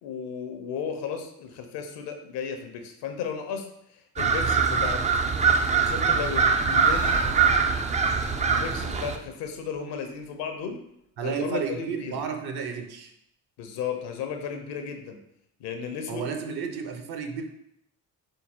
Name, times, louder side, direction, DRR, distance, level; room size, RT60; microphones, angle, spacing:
voice 1, 0.0-3.7 4.2-5.1 5.8-7.2 8.4-10.8 11.2-12.2 13.6-15.2 15.6-16.3, left 6 dB, 60° left, 5 dB, 0.8 m, -34 dB
sound 1, 4.2-9.2, right 5 dB, 15° right, 0.4 m, -23 dB
Breathing, 6.7-10.2, right 1 dB, 85° right, 1.2 m, -40 dB
voice 2, 11.2-13.1 16.1-17.4, right 6 dB, 55° right, 5 dB, 0.8 m, -32 dB
4.1 x 3.8 x 2.8 m, 0.75 s
hypercardioid pair, 45°, 46 cm